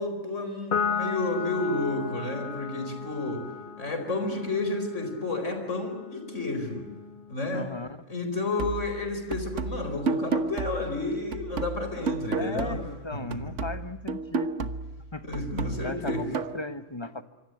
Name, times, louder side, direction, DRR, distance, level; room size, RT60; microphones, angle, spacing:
voice 1, 0.0-3.5 3.8-6.9 7.3-7.6 8.1-12.8 13.1-13.5 15.2-16.2, left 2 dB, 70° left, 7 dB, 5.0 m, -31 dB
Piano, 0.7-7.4, left 5 dB, 45° left, 1.5 m, -35 dB
voice 2, 7.5-8.0 12.3-14.7 15.1-15.3 15.8-17.2, left 2 dB, 25° left, 11 dB, 1.1 m, -37 dB
sound 1, 8.6-13.0 13.3-16.6, right 4 dB, 70° right, 1.5 m, -32 dB
25.5 x 25.5 x 7.8 m, 1.2 s
omnidirectional pair, 1.3 m